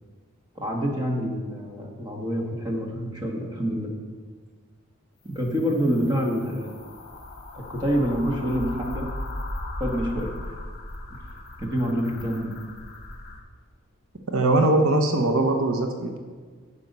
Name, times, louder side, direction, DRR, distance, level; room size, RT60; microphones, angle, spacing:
voice 1, 0.5-3.9 5.2-6.7 7.5-9.1 9.8-10.3 11.1-12.5, equal, 20° right, 0 dB, 1.4 m, -27 dB
sound 1, 5.3-13.4, left 1 dB, 45° left, 1.2 m, -37 dB
voice 2, 14.3-16.2, right 2 dB, 75° right, 5 dB, 0.9 m, -21 dB
10.5 x 5.6 x 5.4 m, 1.5 s
head